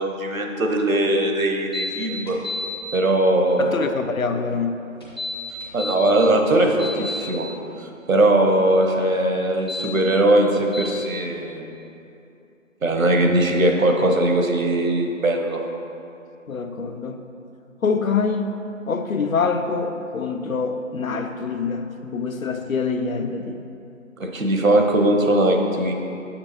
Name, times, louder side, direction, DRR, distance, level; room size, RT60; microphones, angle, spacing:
voice 1, 0.0-2.4 2.9-3.8 5.7-7.5 8.1-11.6 12.8-15.6 24.2-25.9, right 1 dB, 75° right, 3 dB, 0.9 m, -20 dB
sound 1, 1.7-1.9 2.3-2.7 5.0-6.0 6.5-7.2 9.5-9.9 10.7-10.9, left 2 dB, 20° left, 0.6 m, -30 dB
voice 2, 3.6-4.8 16.5-17.2 17.8-18.5 18.9-23.6, left 5 dB, 80° left, 7 dB, 0.6 m, -25 dB
6.9 x 6.8 x 2.9 m, 2.7 s
figure-of-eight pair, 150°, 41 cm